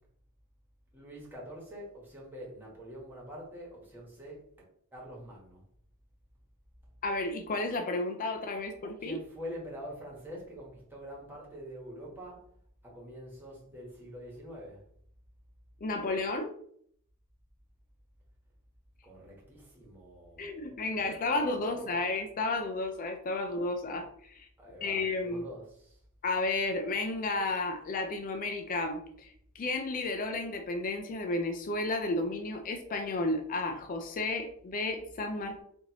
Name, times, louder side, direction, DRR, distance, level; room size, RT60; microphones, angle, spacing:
voice 1, 0.9-4.4 4.9-5.6 9.0-12.5 12.8-14.8 19.0-22.1 23.9-24.0 24.6-26.0, equal, 10° right, 1.3 m, -46 dB
voice 2, 7.0-9.2 15.8-16.5 20.4-24.5 24.8-25.4 26.2-35.6, left 2 dB, 40° left, 0.4 m, -32 dB
4.3 x 2.6 x 2.9 m
head